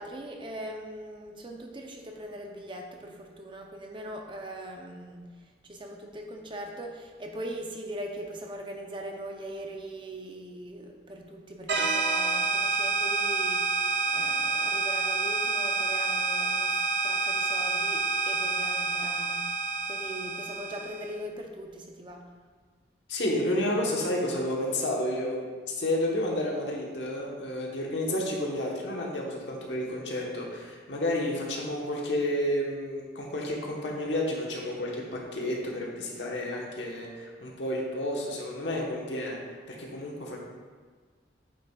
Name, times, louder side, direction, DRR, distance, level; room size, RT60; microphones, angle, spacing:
voice 1, 0.0-22.3, right 1 dB, 25° right, 2 dB, 0.7 m, -41 dB
sound 1, 11.7-21.1, right 3 dB, 70° right, 0.6 m, -28 dB
voice 2, 23.1-25.5 25.8-39.4 39.7-40.4, left 1 dB, 85° left, -2 dB, 1.3 m, -31 dB
8.7 x 6.1 x 2.4 m, 1.5 s
head